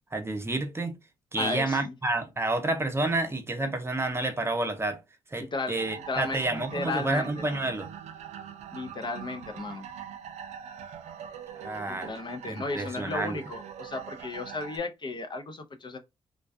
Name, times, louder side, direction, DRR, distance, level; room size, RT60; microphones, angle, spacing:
voice 1, 0.1-1.0 1.3-5.0 5.3-7.9 11.5-12.1 12.5-13.4, right 2 dB, 20° right, 0.6 m, -29 dB
voice 2, 1.4-1.9 5.4-5.8 6.1-7.4 8.7-9.9 11.9-16.0, left 3 dB, 40° left, 0.5 m, -35 dB
sound 1, 5.8-14.8, right 8 dB, 70° right, 0.4 m, -43 dB
2.3 x 2.2 x 2.5 m
supercardioid pair, 55°, 12 cm